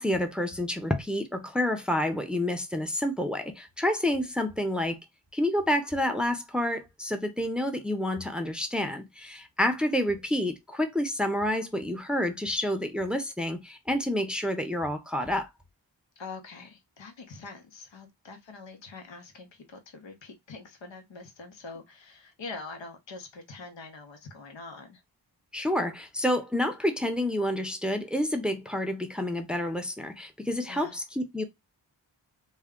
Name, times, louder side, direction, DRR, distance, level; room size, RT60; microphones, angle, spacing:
voice 1, 0.0-5.0 5.3-15.5 25.5-31.4, left 1 dB, ahead, 0.6 m, -29 dB
voice 2, 16.2-25.0 30.7-30.9, left 3 dB, 80° left, 0.8 m, -44 dB
2.2 x 2.2 x 3.5 m
cardioid pair, 40°, 44 cm